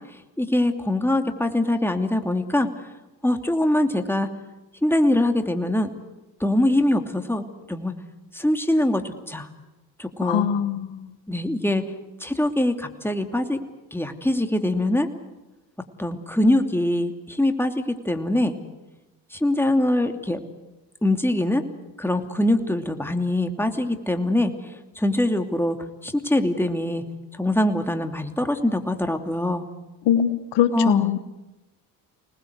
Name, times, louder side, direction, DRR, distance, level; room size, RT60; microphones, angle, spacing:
voice 1, 0.1-2.7 3.2-4.3 4.8-5.9 6.4-7.9 8.3-9.5 10.0-10.5 11.3-11.8 12.2-13.6 13.9-15.1 16.0-18.5 19.3-20.4 21.0-21.6 22.0-25.8 26.0-27.0 27.3-29.7 30.7-31.2, left 1 dB, 5° left, 6 dB, 2.7 m, -23 dB
voice 2, 10.2-11.1 30.1-31.2, left 10 dB, 75° left, 12 dB, 1.2 m, -22 dB
26.0 x 19.5 x 8.1 m, 1.1 s
hypercardioid pair, 55°, 42 cm